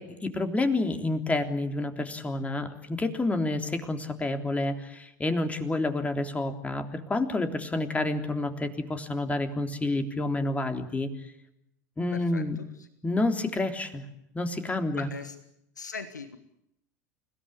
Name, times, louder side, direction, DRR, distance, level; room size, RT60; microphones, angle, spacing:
voice 1, 0.0-11.1 12.0-12.6 13.0-14.0 14.3-15.1, left 2 dB, 15° left, 6 dB, 3.4 m, -29 dB
voice 2, 12.1-12.4 12.8-12.9 14.9-15.4 15.8-16.4, left 4 dB, 85° left, 11 dB, 1.5 m, -39 dB
29.5 x 18.0 x 8.7 m, 0.79 s
figure-of-eight pair, 80°, 9 cm